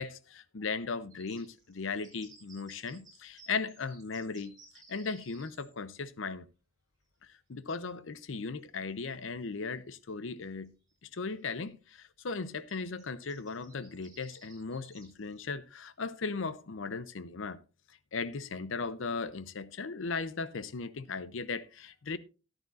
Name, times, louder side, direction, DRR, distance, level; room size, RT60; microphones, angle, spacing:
voice 1, 0.0-4.5 4.9-6.5 7.5-10.7 11.1-17.6 18.1-22.2, left 4 dB, 70° left, 0.6 m, -37 dB
sound 1, 1.1-5.7 8.1-8.2 8.6-8.7 10.0-10.1 10.4-10.9 11.4-11.6 12.7-15.5, right 3 dB, 20° right, 5.7 m, -58 dB
13.5 x 11.0 x 2.5 m
head